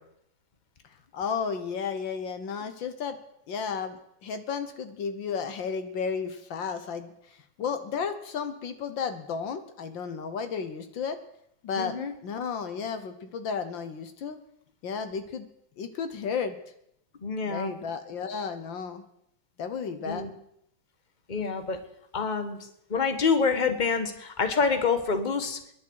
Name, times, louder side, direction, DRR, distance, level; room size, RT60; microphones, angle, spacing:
voice 1, 1.1-3.2 3.5-11.2 11.6-12.0 12.2-14.4 14.8-15.5 15.8-16.6 17.4-19.0 19.6-20.3, left 6 dB, 65° left, 9 dB, 1.7 m, -33 dB
voice 2, 11.8-12.1 17.2-17.7 20.0-20.3 21.3-21.8 22.1-22.6 22.9-25.6, left 5 dB, 25° left, 8 dB, 1.2 m, -27 dB
27.5 x 11.0 x 4.7 m, 0.76 s
omnidirectional pair, 2.3 m